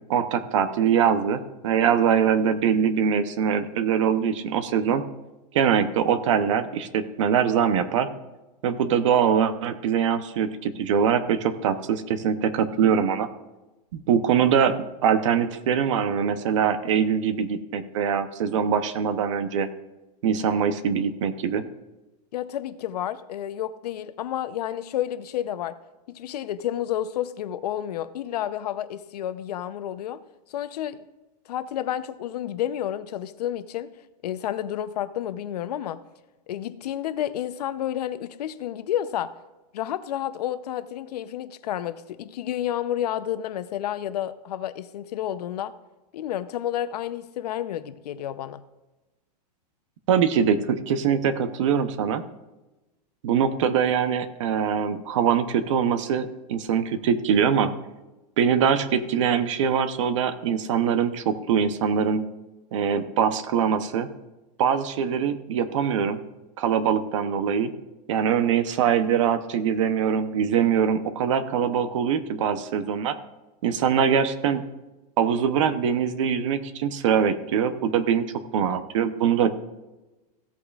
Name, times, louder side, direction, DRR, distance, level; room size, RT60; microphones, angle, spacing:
voice 1, 0.1-5.0 5.5-8.1 8.6-13.3 13.9-19.7 20.2-21.6 50.1-52.2 53.2-57.7 58.4-62.2 62.7-64.1 64.6-66.2 66.6-67.7 68.1-73.1 73.6-74.6 75.2-78.2 78.5-79.5, right 7 dB, 50° right, 11 dB, 0.7 m, -23 dB
voice 2, 22.3-25.8 26.1-30.2 30.5-31.0 31.5-33.9 34.2-36.0 36.5-39.3 39.7-45.7 46.1-48.6, left 11 dB, 70° left, 13 dB, 0.7 m, -30 dB
16.0 x 8.4 x 2.4 m, 1.1 s
supercardioid pair, 180°, 21 cm